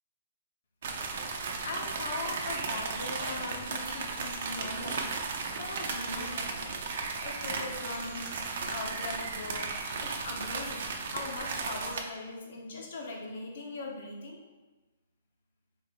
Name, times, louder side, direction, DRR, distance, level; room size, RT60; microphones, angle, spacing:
sound 1, 0.8-12.0, right 4 dB, 60° right, 0.6 m, -35 dB
voice 1, 1.6-5.1 5.5-6.8 7.2-8.4 8.6-9.7 10.0-14.5, left 3 dB, 65° left, 1 dB, 1.0 m, -40 dB
3.7 x 2.6 x 4.5 m, 1.2 s
hypercardioid pair, 150°, 0 cm